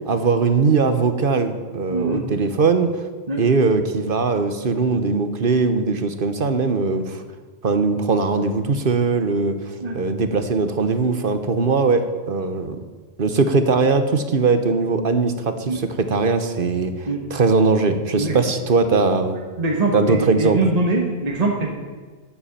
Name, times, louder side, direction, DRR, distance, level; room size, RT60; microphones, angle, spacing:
voice 1, 0.0-3.0 3.4-7.2 7.6-12.8 13.2-19.4 19.9-20.6, right 4 dB, 60° right, 9 dB, 1.3 m, -20 dB
voice 2, 1.9-2.2 3.3-3.4 9.8-10.0 15.7-15.8 17.1-17.2 18.2-18.4 19.6-21.7, right 2 dB, 40° right, -1 dB, 1.7 m, -22 dB
11.5 x 8.6 x 8.5 m, 1.4 s
omnidirectional pair, 1.0 m